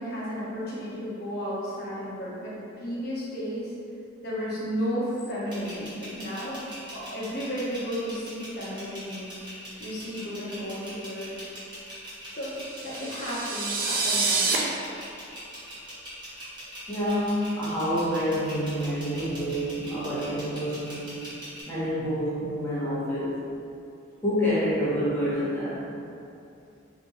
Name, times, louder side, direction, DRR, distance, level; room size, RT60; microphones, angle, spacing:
voice 1, 0.0-3.7 4.2-6.6 6.9-9.3 9.8-11.3 12.3-12.6 12.8-14.8, equal, 50° left, -8 dB, 1.0 m, -33 dB
sound 1, 5.5-21.6, equal, 25° right, 0.9 m, -42 dB
sound 2, 12.7-14.6, right 4 dB, 45° right, 0.4 m, -27 dB
voice 2, 16.9-21.2 21.7-23.5 24.2-25.9, equal, 10° left, -11 dB, 1.0 m, -28 dB
4.4 x 2.8 x 2.4 m, 2.6 s
head